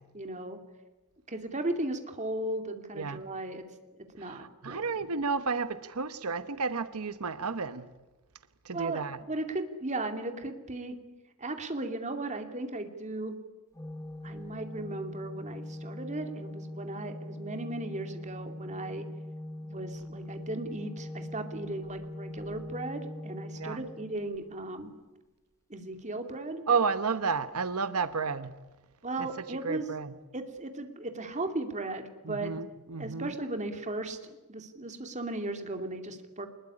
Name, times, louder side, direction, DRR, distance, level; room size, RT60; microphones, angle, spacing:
voice 1, 0.1-0.6 1.3-3.6 4.1-4.8 8.7-10.9 11.4-13.4 14.2-19.1 19.6-24.9 25.7-26.6 29.0-29.9 30.3-32.5 33.0-36.5, right 2 dB, 35° right, 2.6 m, -36 dB
voice 2, 4.6-7.8 8.7-9.2 23.6-23.8 26.7-28.5 29.2-29.3 29.6-30.1 32.3-32.7 32.9-33.3, right 5 dB, 90° right, 1.0 m, -31 dB
Organ, 13.8-24.7, left 1 dB, 15° left, 1.0 m, -41 dB
24.5 x 21.0 x 9.9 m
head